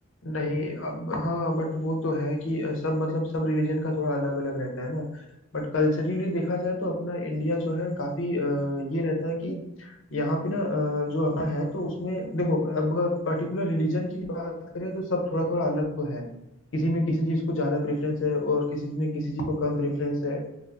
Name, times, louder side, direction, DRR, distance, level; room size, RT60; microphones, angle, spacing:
voice 1, 0.2-5.2 5.5-16.3 16.7-20.4, left 1 dB, 75° left, 2 dB, 0.7 m, -27 dB
4.3 x 2.0 x 2.5 m, 0.93 s
head